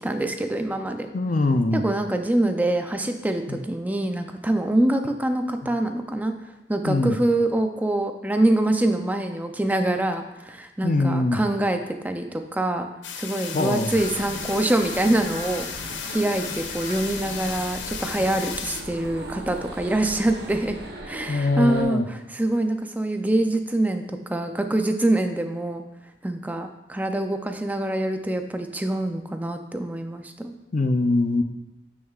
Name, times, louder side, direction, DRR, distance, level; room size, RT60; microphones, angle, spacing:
voice 1, 0.0-1.1 1.7-12.9 13.2-20.8 21.0-25.8 26.2-30.6, right 1 dB, 10° right, 6 dB, 0.4 m, -25 dB
voice 2, 1.1-1.8 3.5-3.6 6.9-7.2 10.8-11.4 13.5-13.9 21.3-22.1 30.7-31.4, left 2 dB, 45° left, 8 dB, 0.5 m, -22 dB
sound 1, 13.0-18.8, left 7 dB, 90° left, 0.6 m, -35 dB
sound 2, 13.9-21.8, right 1 dB, 60° right, 1.0 m, -39 dB
9.3 x 6.3 x 2.4 m, 0.95 s
head